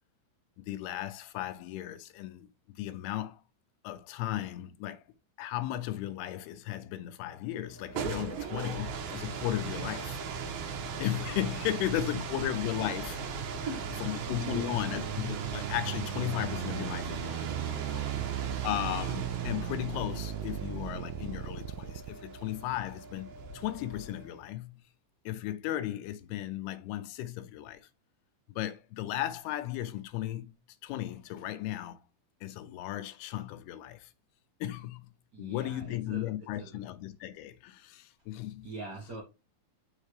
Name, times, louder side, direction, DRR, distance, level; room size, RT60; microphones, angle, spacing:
voice 1, 0.6-2.5 2.8-3.4 3.8-5.0 5.4-10.2 11.0-13.5 14.0-18.1 18.6-23.3 23.5-24.8 25.3-27.8 28.5-30.6 30.8-32.0 32.4-34.1 34.6-35.1 35.4-38.7, left 13 dB, 80° left, 2.5 m, -35 dB
sound 1, 7.7-24.4, right 5 dB, 75° right, 2.6 m, -38 dB
sound 2, 13.4-22.1, right 13 dB, 90° right, 2.0 m, -38 dB
voice 2, 13.6-14.9 18.1-18.3 35.3-36.3 36.6-36.9 38.6-39.2, right 3 dB, 55° right, 1.1 m, -42 dB
6.4 x 4.8 x 3.3 m
omnidirectional pair, 4.7 m